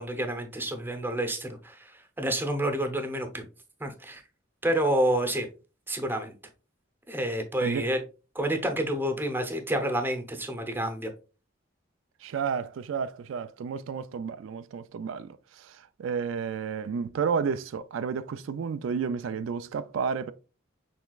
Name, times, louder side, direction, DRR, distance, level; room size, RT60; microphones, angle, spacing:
voice 1, 0.0-3.5 3.8-4.2 4.6-5.5 5.9-6.3 7.1-8.0 8.3-11.1, right 1 dB, 10° right, 0.8 m, -29 dB
voice 2, 12.2-20.3, right 6 dB, 80° right, 0.3 m, -31 dB
6.3 x 3.4 x 2.3 m
head